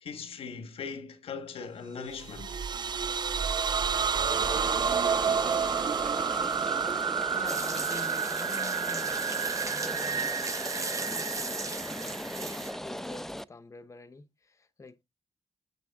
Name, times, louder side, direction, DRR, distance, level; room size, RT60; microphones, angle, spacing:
voice 1, 0.0-2.6 6.4-6.8, left 5 dB, 75° left, 1.5 m, -40 dB
sound 1, 2.1-12.7, right 6 dB, 50° right, 0.5 m, -30 dB
Rain, 4.3-13.4, equal, 5° left, 0.6 m, -38 dB
voice 2, 7.3-9.3 9.6-11.8 12.0-15.0, left 3 dB, 30° left, 0.9 m, -47 dB
sound 2, 7.5-12.7, right 3 dB, 35° right, 1.0 m, -38 dB
8.4 x 3.4 x 3.5 m
supercardioid pair, 55°, 10 cm